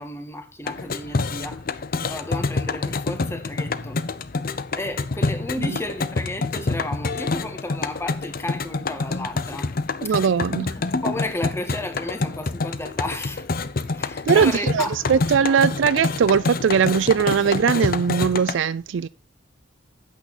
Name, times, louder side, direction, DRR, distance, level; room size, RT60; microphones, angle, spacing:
voice 1, 0.0-1.7 2.1-4.0 4.7-9.7 10.0-10.1 10.7-13.5 13.9-15.6, left 1 dB, 15° left, 1.5 m, -33 dB
sound 1, 0.7-18.6, left 3 dB, 50° left, 0.7 m, -27 dB
voice 2, 10.0-10.7 14.3-19.1, right 6 dB, 80° right, 0.4 m, -20 dB
9.1 x 8.3 x 4.1 m
head